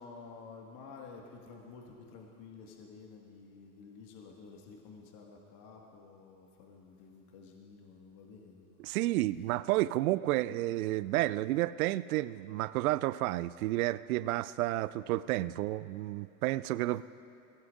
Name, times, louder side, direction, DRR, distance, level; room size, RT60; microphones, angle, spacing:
voice 1, 0.0-8.8, left 4 dB, 50° left, 0 dB, 1.8 m, -51 dB
voice 2, 8.8-17.0, right 16 dB, 75° right, 17 dB, 0.5 m, -31 dB
22.0 x 16.0 x 2.5 m, 2.9 s
hypercardioid pair, 95°, 44 cm